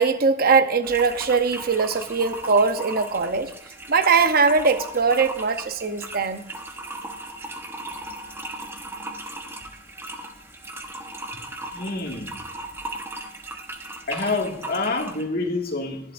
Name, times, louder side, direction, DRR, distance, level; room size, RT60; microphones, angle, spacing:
voice 1, 0.0-3.5 3.9-6.4, right 4 dB, 50° right, 0.8 m, -21 dB
sound 1, 0.8-15.3, right 1 dB, 15° right, 1.1 m, -37 dB
voice 2, 11.7-12.3 14.1-16.0, left 3 dB, 55° left, 2.1 m, -27 dB
19.0 x 11.0 x 2.5 m
head